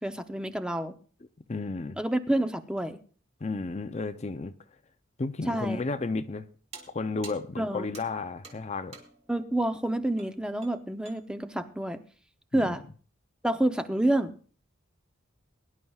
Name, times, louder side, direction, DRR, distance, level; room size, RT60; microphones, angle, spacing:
voice 1, 0.0-1.0 2.0-3.0 5.5-5.8 7.6-7.9 9.3-12.0 12.5-12.8 13.4-14.3, right 1 dB, 5° right, 0.6 m, -28 dB
voice 2, 1.5-2.0 3.4-4.5 5.2-6.5 6.9-9.0 12.5-12.8, left 3 dB, 35° left, 0.5 m, -33 dB
sound 1, 6.7-9.3 10.2-10.4 10.6-11.3, right 4 dB, 30° right, 2.4 m, -49 dB
22.0 x 11.0 x 2.4 m
head